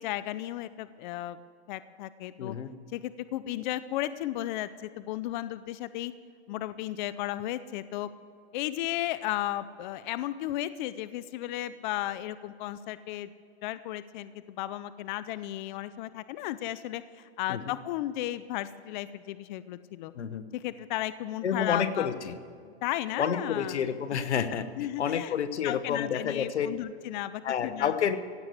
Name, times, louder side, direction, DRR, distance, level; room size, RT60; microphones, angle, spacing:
voice 1, 0.0-1.4 1.7-2.5 2.9-6.1 6.5-8.1 8.5-13.3 13.6-20.1 20.5-22.1 22.6-23.8 24.8-25.3 25.6-27.9, left 14 dB, 45° left, 15 dB, 0.5 m, -34 dB
voice 2, 2.4-2.7 17.5-17.7 20.1-20.4 21.4-22.4 23.2-24.7 25.0-26.7 27.4-28.2, left 8 dB, 85° left, 11 dB, 1.1 m, -29 dB
16.5 x 7.7 x 8.2 m, 2.2 s
hypercardioid pair, 130°, 33 cm